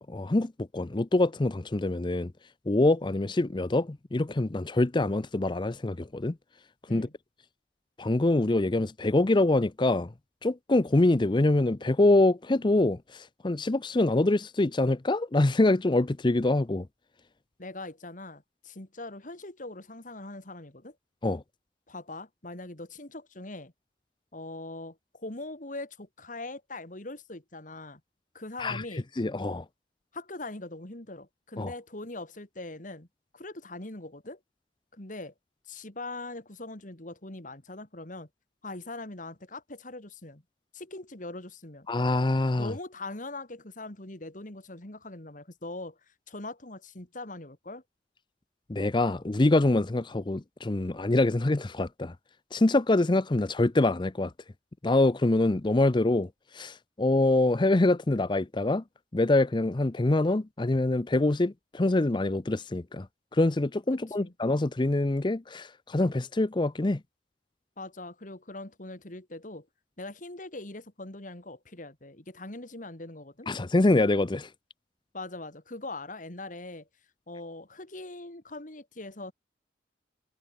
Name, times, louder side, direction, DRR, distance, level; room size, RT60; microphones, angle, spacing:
voice 1, 0.1-2.3 2.7-6.4 6.9-7.1 8.0-10.1 10.4-16.9 21.2-21.4 28.6-28.8 29.2-29.6 31.6-31.7 41.9-42.7 48.7-52.1 52.5-54.3 54.8-56.3 56.5-58.8 59.1-63.1 63.3-67.0 73.5-74.5, left 2 dB, 25° left, 0.6 m, -25 dB
voice 2, 17.6-21.0 21.9-23.7 24.3-28.0 28.3-29.1 30.1-33.1 33.3-34.4 34.9-35.3 35.7-38.3 38.6-40.4 40.7-41.9 42.5-46.0 46.3-47.8 63.9-64.3 67.8-69.7 70.0-73.5 75.1-76.9 77.3-79.3, left 2 dB, 50° left, 2.7 m, -41 dB
head